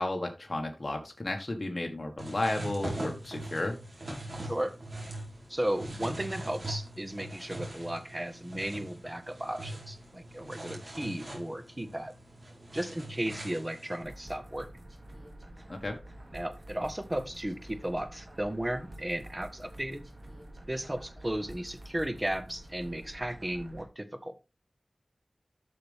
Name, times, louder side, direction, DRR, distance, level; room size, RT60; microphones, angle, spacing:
voice 1, 0.0-3.7 15.7-16.0, left 2 dB, 45° left, 2 dB, 1.6 m, -33 dB
sound 1, 2.2-14.0, right 1 dB, 65° right, 4.2 m, -41 dB
voice 2, 4.4-4.8 5.5-12.1 12.7-14.7 16.3-20.1 20.7-24.4, right 1 dB, 25° right, 10 dB, 1.4 m, -35 dB
sound 2, 14.0-23.8, right 1 dB, 45° right, 2.4 m, -48 dB
11.5 x 6.5 x 3.5 m, 0.28 s
wide cardioid pair, 45°, 0 cm